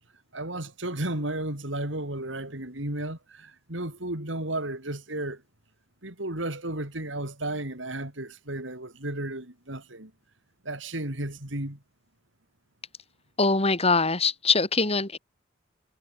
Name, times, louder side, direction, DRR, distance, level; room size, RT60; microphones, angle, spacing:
voice 1, 0.3-5.4 6.0-10.1 10.6-11.8, right 1 dB, 75° right, 5.4 m, -33 dB
voice 2, 13.4-15.2, left 4 dB, 35° left, 5.7 m, -23 dB
head